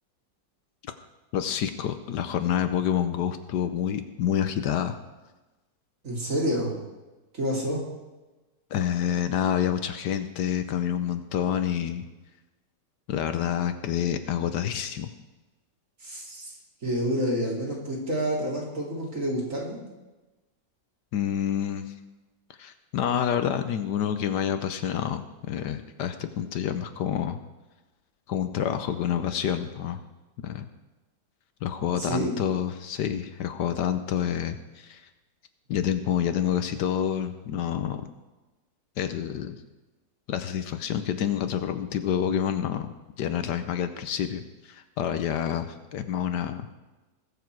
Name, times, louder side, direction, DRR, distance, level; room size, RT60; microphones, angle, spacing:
voice 1, 1.3-4.9 8.7-12.0 13.1-15.1 21.1-21.9 22.6-27.4 28.3-30.0 30.4-30.7 31.6-35.0 35.7-38.0 39.0-39.6 40.3-46.7, left 9 dB, 75° left, 9 dB, 1.3 m, -28 dB
voice 2, 6.0-6.7 7.3-7.8 16.0-16.5 16.8-19.8 32.0-32.4, equal, 45° right, -3 dB, 3.1 m, -28 dB
20.5 x 7.1 x 4.6 m, 1.1 s
omnidirectional pair, 1.9 m